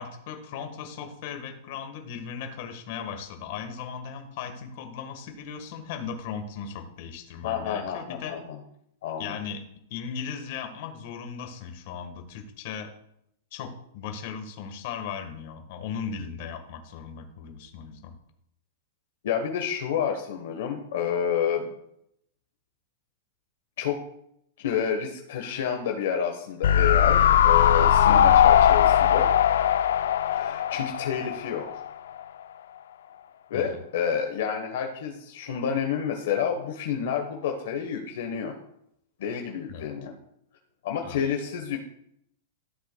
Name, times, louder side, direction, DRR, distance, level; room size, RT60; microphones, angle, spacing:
voice 1, 0.0-8.4 9.2-9.6 9.9-12.9 13.5-18.2 28.1-28.5 33.5-33.7 39.7-39.9 41.0-41.3, left 7 dB, 45° left, 4 dB, 1.3 m, -37 dB
voice 2, 7.4-8.6 9.0-9.4 19.2-21.7 23.8-24.0 24.6-29.3 30.3-31.6 33.5-38.5 39.2-40.1 40.8-41.8, left 8 dB, 60° left, 3 dB, 1.1 m, -29 dB
sound 1, 26.6-31.9 32.2-32.3, left 10 dB, 80° left, 0.4 m, -20 dB
14.0 x 7.7 x 2.2 m, 0.75 s
supercardioid pair, 165°, 0 cm